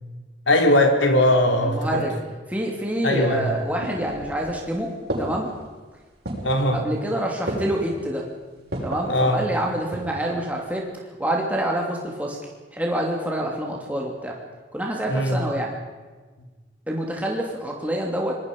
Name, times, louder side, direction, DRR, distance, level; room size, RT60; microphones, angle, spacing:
voice 1, 0.5-2.0 3.0-3.5 6.4-6.8 9.0-9.5 15.1-15.4, left 1 dB, 90° left, 4 dB, 3.5 m, -20 dB
voice 2, 1.6-2.1 2.5-4.9 5.2-5.5 6.7-8.2 8.8-10.9 11.2-12.4 12.7-14.4 14.7-15.7 16.9-18.4, right 1 dB, 10° right, -1 dB, 2.9 m, -27 dB
sound 1, 3.3-4.6 5.1-5.6 6.2-6.7 7.5-7.9 8.7-9.1 9.7-10.3 10.5-10.6, right 1 dB, 60° right, 6.4 m, -31 dB
25.0 x 20.5 x 5.5 m, 1.3 s
head